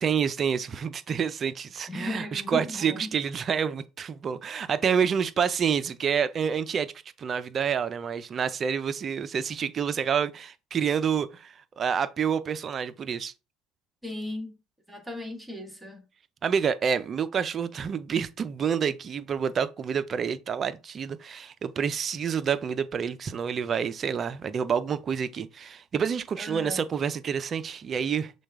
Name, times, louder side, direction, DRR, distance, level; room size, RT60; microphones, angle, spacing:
voice 1, 0.0-6.9 7.2-13.3 16.4-28.3, right 7 dB, 40° right, 0.5 m, -28 dB
voice 2, 1.9-3.1 14.0-14.6 14.9-16.0 26.4-26.9, left 1 dB, 10° right, 1.6 m, -36 dB
6.2 x 2.3 x 3.6 m
supercardioid pair, 85°, 0 cm